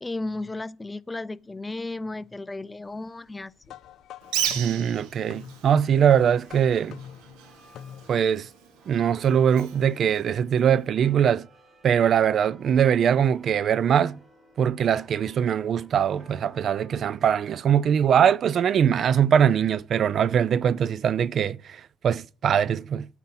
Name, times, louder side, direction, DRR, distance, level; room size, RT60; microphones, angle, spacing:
voice 1, 0.0-3.5, left 2 dB, 15° left, 0.4 m, -34 dB
sound 1, 3.6-8.4, left 9 dB, 65° left, 0.8 m, -46 dB
Bird, 4.2-10.9, right 10 dB, 85° right, 1.7 m, -36 dB
voice 2, 4.5-7.0 8.1-8.5 8.9-11.5 11.8-14.2 14.6-23.1, right 8 dB, 50° right, 0.5 m, -22 dB
sound 2, 6.3-19.9, right 1 dB, 30° right, 4.7 m, -57 dB
9.0 x 7.7 x 5.9 m
cardioid pair, 100°, 0 cm